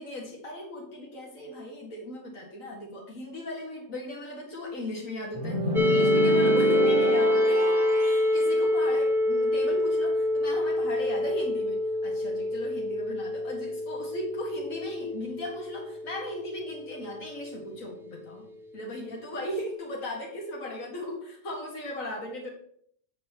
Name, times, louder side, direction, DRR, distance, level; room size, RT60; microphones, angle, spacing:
voice 1, 0.0-18.4 18.7-22.5, left 1 dB, 85° left, -2 dB, 2.2 m, -37 dB
sound 1, 5.3-8.3, right 2 dB, 25° left, 3.0 m, -28 dB
sound 2, 5.8-17.5, left 1 dB, 5° right, 0.6 m, -26 dB
11.0 x 6.7 x 3.0 m, 0.65 s
omnidirectional pair, 1.4 m